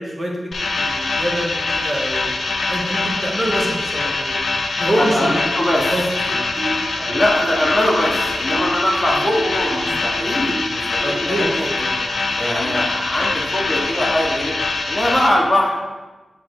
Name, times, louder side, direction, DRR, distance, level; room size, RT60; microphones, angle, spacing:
voice 1, 0.0-4.4 4.8-6.5 7.0-7.2 9.1-9.2 11.0-11.9, right 1 dB, 25° right, -2 dB, 1.1 m, -26 dB
sound 1, 0.5-15.3, left 3 dB, 65° left, 0.5 m, -23 dB
voice 2, 5.0-5.9 7.1-11.7 12.4-14.6 14.9-15.8, left 1 dB, 20° left, -2 dB, 1.0 m, -21 dB
Guitar, 6.3-14.0, right 1 dB, 60° right, 1.1 m, -34 dB
8.4 x 3.1 x 4.6 m, 1.2 s
wide cardioid pair, 130°, 0 cm